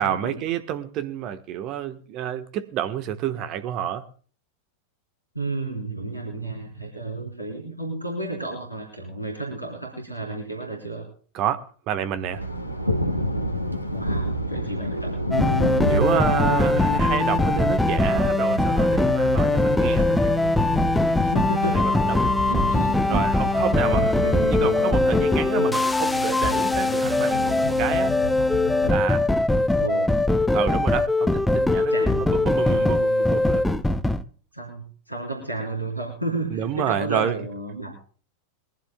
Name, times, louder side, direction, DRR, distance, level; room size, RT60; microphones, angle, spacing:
voice 1, 0.0-4.0 11.3-12.4 15.9-20.6 22.1-22.2 23.1-24.1 24.5-28.1 28.8-29.3 30.5-31.9 32.2-33.7 36.5-37.4, right 10 dB, 40° right, 1.2 m, -29 dB
voice 2, 5.3-11.1 13.9-15.2 21.2-21.9 22.4-23.2 23.8-24.7 25.5-25.7 29.8-30.1 31.8-32.3 34.5-37.9, right 2 dB, 90° left, 3.5 m, -32 dB
Thunder, 12.1-28.1, equal, 90° right, 1.4 m, -30 dB
sound 1, 15.3-34.2, left 2 dB, 5° left, 0.6 m, -21 dB
sound 2, 18.6-25.7 26.4-29.0, left 2 dB, 45° left, 6.6 m, -32 dB
22.5 x 14.5 x 2.2 m
figure-of-eight pair, 90°, 0 cm